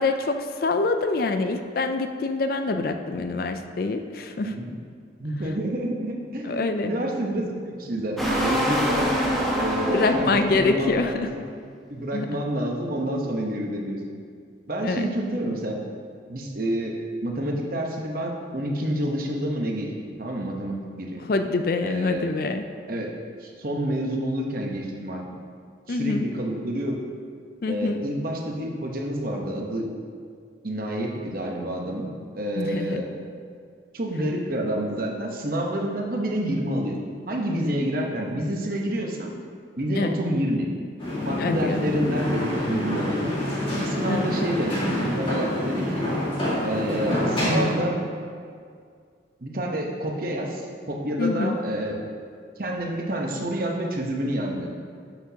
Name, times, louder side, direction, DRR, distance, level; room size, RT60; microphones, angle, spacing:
voice 1, 0.0-4.5 6.4-6.9 9.9-11.3 12.1-12.3 14.8-15.1 21.3-22.6 25.9-26.3 27.6-28.0 32.6-33.0 40.0-40.2 41.4-41.8 44.1-44.3 51.2-51.6, left 3 dB, 50° left, 7 dB, 0.4 m, -25 dB
voice 2, 4.4-4.7 5.2-9.2 9.5-11.4 11.9-14.0 14.7-15.7 16.3-17.0 17.2-19.9 20.2-21.2 21.8-22.3 22.9-23.1 23.4-25.2 25.9-27.0 27.7-29.9 30.6-32.1 32.3-33.1 33.9-37.0 37.3-39.3 39.8-40.7 41.2-43.4 43.7-46.1 46.6-48.0 49.4-52.0 52.6-54.7, right 1 dB, 50° right, 0 dB, 1.0 m, -28 dB
sound 1, 8.2-11.2, equal, ahead, 1.0 m, -25 dB
sound 2, 41.0-47.7, left 1 dB, 25° left, 1.9 m, -26 dB
11.5 x 6.0 x 2.8 m, 2.1 s
head